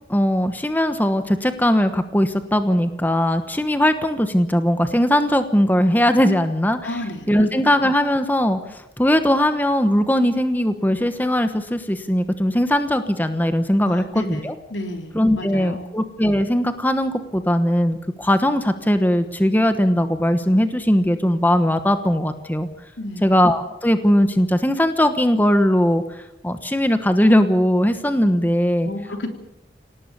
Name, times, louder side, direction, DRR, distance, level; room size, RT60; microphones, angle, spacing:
voice 1, 0.1-6.9 7.3-14.5 15.1-22.7 23.2-28.9, equal, 10° left, 9 dB, 1.1 m, -19 dB
voice 2, 6.8-7.5 13.8-15.9 23.0-23.3 28.8-29.3, left 1 dB, 90° left, 5 dB, 3.3 m, -32 dB
26.5 x 18.0 x 6.9 m, 0.86 s
head